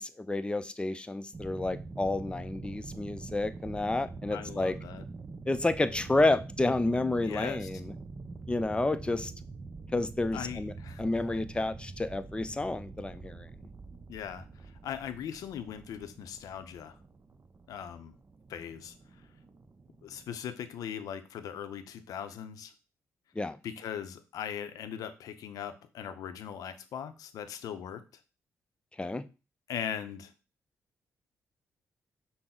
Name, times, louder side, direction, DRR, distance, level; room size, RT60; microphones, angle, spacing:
voice 1, 0.0-4.8 5.5-7.9 8.5-9.3 9.9-13.5 23.4-23.6 29.0-29.2, left 2 dB, 15° left, 12 dB, 0.5 m, -30 dB
sound 1, 1.3-20.5, right 3 dB, 40° right, 0.5 m, -45 dB
voice 2, 4.3-5.0 7.2-7.7 10.3-11.0 14.1-17.0 17.7-18.2 18.5-18.9 20.0-22.7 23.6-28.0 29.7-30.3, left 8 dB, 80° left, 10 dB, 0.5 m, -39 dB
5.8 x 2.0 x 3.8 m, 0.31 s
supercardioid pair, 60°, 6 cm